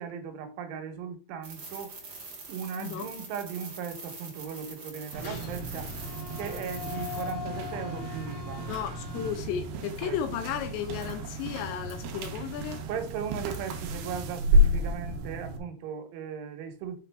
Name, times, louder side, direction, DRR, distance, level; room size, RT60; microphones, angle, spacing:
voice 1, 0.0-2.0 2.5-5.9 6.4-8.7 10.0-10.3 12.7-17.0, right 7 dB, 90° right, 3.6 m, -37 dB
sound 1, 1.4-7.3, right 3 dB, 40° right, 1.4 m, -44 dB
voice 2, 2.8-3.1 8.7-12.8, left 9 dB, 80° left, 2.7 m, -34 dB
sound 2, 5.1-9.3, left 7 dB, 65° left, 3.0 m, -40 dB
sound 3, 5.1-15.6, left 1 dB, 75° right, 2.6 m, -31 dB
6.6 x 6.1 x 3.4 m
omnidirectional pair, 5.3 m